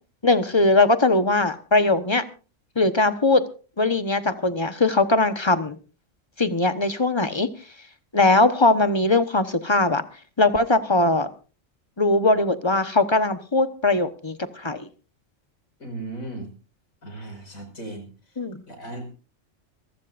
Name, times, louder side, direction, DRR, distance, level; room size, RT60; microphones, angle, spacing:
voice 1, 0.2-2.2 2.8-3.4 3.8-5.8 6.4-7.5 8.1-10.0 10.4-11.3 12.0-14.9 18.4-18.6, left 2 dB, 20° left, 10 dB, 1.1 m, -20 dB
voice 2, 15.8-16.5 17.0-18.4 18.7-19.1, right 2 dB, 85° left, 4 dB, 5.8 m, -37 dB
25.5 x 15.0 x 2.6 m, 0.37 s
omnidirectional pair, 1.4 m